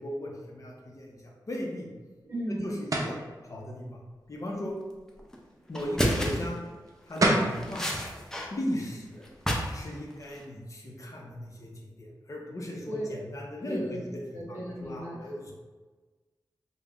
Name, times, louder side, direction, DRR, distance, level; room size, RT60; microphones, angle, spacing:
voice 1, 0.0-1.9 2.5-3.2 3.5-4.0 4.3-4.8 5.7-6.6 7.1-7.9 8.5-9.3 9.7-14.2 14.5-15.5, left 1 dB, 45° left, -1 dB, 0.6 m, -37 dB
voice 2, 2.2-2.7 12.8-13.3 13.6-14.0 14.3-15.3, right 1 dB, 30° right, -7 dB, 1.4 m, -36 dB
sound 1, 2.9-3.2 6.9-7.0 7.2-7.6, right 1 dB, 45° right, 0.5 m, -24 dB
sound 2, 5.2-5.4 5.7-6.5 7.1-8.5 8.7-9.8 10.1-10.5, equal, 5° left, 0.5 m, -31 dB
5.1 x 2.1 x 2.3 m, 1.3 s
wide cardioid pair, 95°, 8 cm